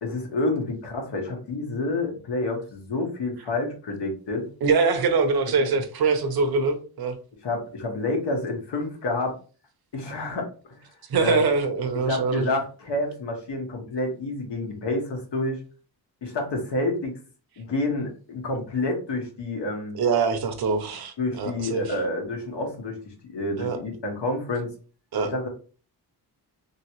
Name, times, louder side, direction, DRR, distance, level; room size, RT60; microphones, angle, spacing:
voice 1, 0.0-4.5 7.4-9.4 9.9-10.8 11.2-11.4 12.1-15.6 16.2-17.2 17.6-20.0 21.2-24.7 25.2-25.5, left 2 dB, 80° left, 2 dB, 1.2 m, -29 dB
voice 2, 4.6-7.2 11.1-12.5 19.9-22.0 23.6-23.8 25.1-25.3, right 4 dB, 60° right, 7 dB, 0.7 m, -23 dB
3.0 x 3.0 x 2.9 m, 0.38 s
wide cardioid pair, 130°, 41 cm